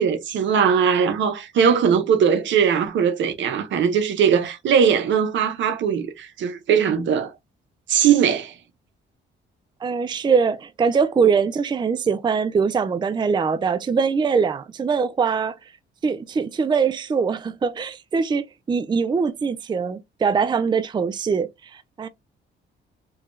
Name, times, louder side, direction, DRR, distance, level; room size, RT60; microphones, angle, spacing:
voice 1, 0.0-7.3 7.9-8.5, right 7 dB, 70° right, 0.9 m, -20 dB
voice 2, 9.8-15.5 16.0-22.1, right 5 dB, 20° right, 0.4 m, -22 dB
4.7 x 2.3 x 3.1 m
cardioid pair, 90°, 20 cm